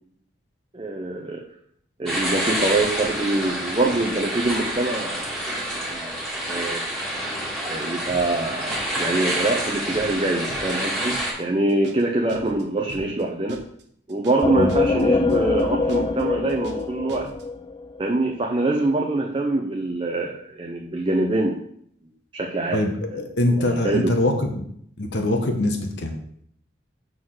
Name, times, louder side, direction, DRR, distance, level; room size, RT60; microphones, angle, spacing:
voice 1, 0.7-1.4 2.0-5.3 5.9-6.1 6.5-6.8 7.7-13.7 14.1-17.3 18.0-21.6 22.3-22.8 23.5-24.1, right 2 dB, 25° right, 0 dB, 0.6 m, -24 dB
sound 1, 2.1-11.3, right 1 dB, ahead, 1.8 m, -28 dB
sound 2, 8.1-8.4 8.7-9.0 9.3-9.6 9.9-10.2 10.5-10.8 11.1-11.4 11.7-12.0 12.3-12.6 12.9-13.2 13.5-13.8 14.1-14.4 14.7-15.0 15.3-15.6 15.9-16.2 16.5-16.8 17.1-17.4, right 2 dB, 60° right, 0.9 m, -41 dB
sound 3, 14.4-18.0, left 3 dB, 25° left, 0.3 m, -23 dB
voice 2, 22.7-24.6 25.0-26.1, left 1 dB, 65° left, 4 dB, 0.9 m, -23 dB
6.2 x 3.9 x 6.3 m, 0.67 s
head